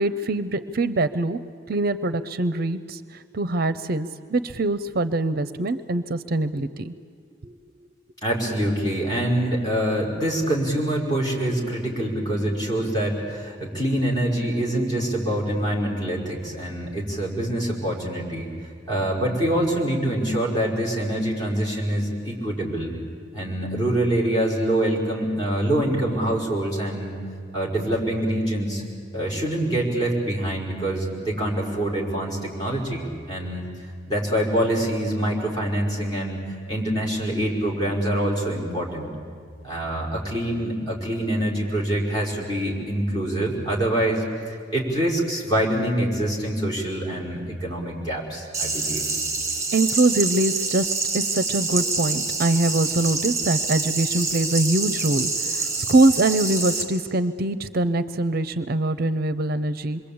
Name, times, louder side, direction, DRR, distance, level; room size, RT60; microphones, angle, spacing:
voice 1, 0.0-1.4 1.7-6.9 7.4-7.6 48.9-49.2 49.7-60.0, right 2 dB, 50° right, 13 dB, 0.6 m, -23 dB
voice 2, 8.2-18.5 18.9-22.9 23.3-27.2 27.5-28.8 29.1-33.7 34.1-39.1 39.6-44.2 44.7-49.0, right 1 dB, 20° left, -3 dB, 5.1 m, -25 dB
sound 1, 48.5-56.8, right 3 dB, 15° right, 3.7 m, -26 dB
26.5 x 22.5 x 8.6 m, 2.1 s
head